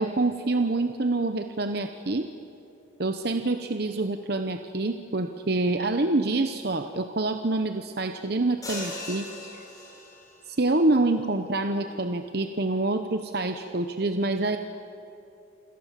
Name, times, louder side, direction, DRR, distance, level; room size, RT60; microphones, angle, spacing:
voice 1, 0.0-2.3 3.0-9.6 10.5-14.6, right 2 dB, 55° right, 7 dB, 0.9 m, -26 dB
sound 1, 8.6-10.4, left 2 dB, 20° left, 6.3 m, -38 dB
28.0 x 26.5 x 7.5 m, 2.9 s
head